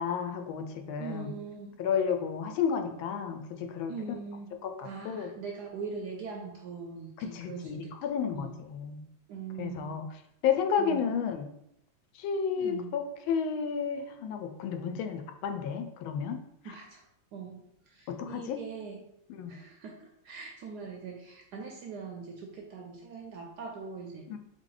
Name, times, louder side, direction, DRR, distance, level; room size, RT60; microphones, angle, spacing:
voice 1, 0.0-1.4 1.8-3.9 4.6-5.3 7.2-9.0 9.6-10.1 10.4-11.5 12.1-16.7 18.1-18.6 19.3-19.6 24.3-24.4, left 7 dB, 85° left, 6 dB, 1.4 m, -32 dB
voice 2, 1.0-1.8 3.9-4.5 4.8-7.9 8.3-8.5 9.3-9.9 10.8-11.1 12.6-12.9 16.6-17.0 17.3-19.0 19.5-24.4, right 5 dB, 75° right, 1 dB, 1.0 m, -42 dB
3.7 x 3.2 x 3.8 m, 0.77 s
omnidirectional pair, 2.2 m